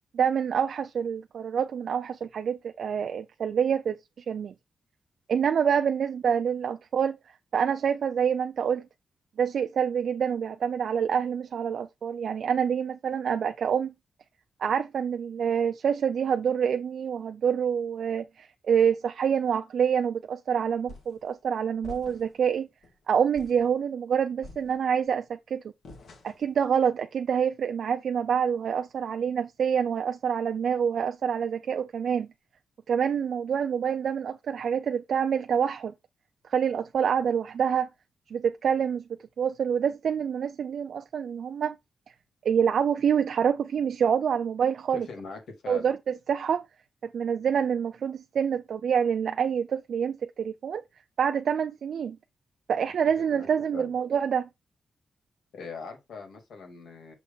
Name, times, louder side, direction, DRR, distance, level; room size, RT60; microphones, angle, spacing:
voice 1, 0.1-4.5 5.3-7.2 7.5-8.8 9.4-13.9 14.6-22.7 23.1-25.6 26.2-32.3 32.9-35.9 36.4-37.9 38.3-39.0 39.4-41.7 42.1-42.2 42.4-45.1 45.7-46.6 47.1-50.8 51.2-52.2 52.7-54.5, right 7 dB, 60° right, 0.4 m, -26 dB
sound 1, 20.9-21.3 21.8-22.4 22.8-23.0 23.3-23.7 24.4-25.1 25.8-26.6, left 2 dB, 60° left, 1.6 m, -47 dB
voice 2, 44.9-45.9 53.2-53.5 53.7-53.9 55.5-57.1, left 4 dB, 80° left, 2.5 m, -41 dB
6.5 x 3.2 x 5.5 m
wide cardioid pair, 170°, 0 cm